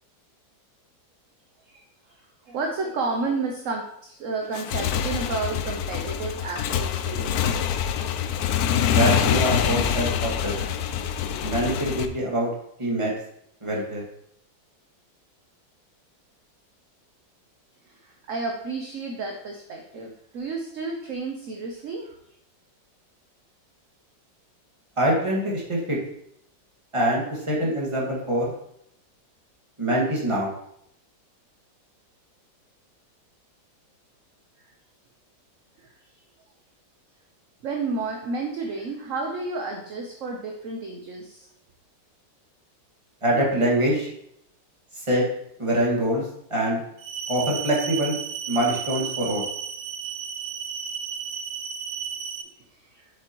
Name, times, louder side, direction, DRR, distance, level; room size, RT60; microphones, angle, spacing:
voice 1, 1.6-7.4 17.8-22.2 35.8-35.9 37.6-41.5 52.5-52.6 52.8-53.1, right 3 dB, 55° right, 2 dB, 0.9 m, -31 dB
Motorcycle / Engine, 4.4-12.1, left 9 dB, 70° left, 0.9 m, -25 dB
voice 2, 8.9-10.5 11.4-12.5 12.8-13.1 13.6-14.0 25.0-26.0 26.9-28.5 29.8-30.5 43.2-44.1 45.1-45.2 45.6-46.2 46.5-46.8 47.3-48.1 48.5-49.5, right 1 dB, 15° right, -3 dB, 1.7 m, -24 dB
sound 1, 47.0-52.4, right 7 dB, 80° right, 1.4 m, -33 dB
7.5 x 7.2 x 3.0 m, 0.74 s
omnidirectional pair, 2.0 m